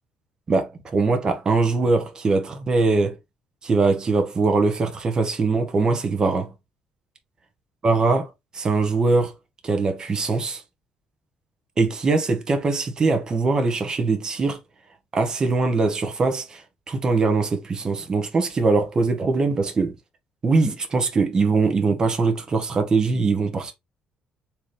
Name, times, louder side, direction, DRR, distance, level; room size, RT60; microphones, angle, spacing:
voice 1, 0.5-3.2 3.6-6.5 7.8-8.3 8.5-9.3 9.6-10.6 11.8-14.6 15.1-20.0 20.4-23.7, right 3 dB, 30° right, 0.8 m, -22 dB
3.9 x 2.8 x 3.1 m
cardioid pair, 135°, 3 cm